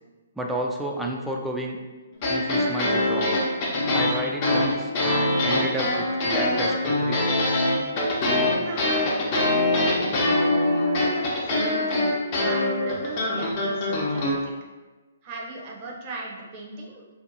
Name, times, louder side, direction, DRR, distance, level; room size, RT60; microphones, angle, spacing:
voice 1, 0.4-1.8 2.3-3.4 3.9-7.4, right 1 dB, 5° right, 0 dB, 0.3 m, -31 dB
sound 1, 2.1-14.3, left 1 dB, 40° left, 0.7 m, -23 dB
voice 2, 8.6-10.4 11.0-14.5 15.2-17.1, right 2 dB, 35° right, -2 dB, 0.6 m, -37 dB
2.7 x 2.4 x 2.6 m, 1.2 s
hypercardioid pair, 140°, 0 cm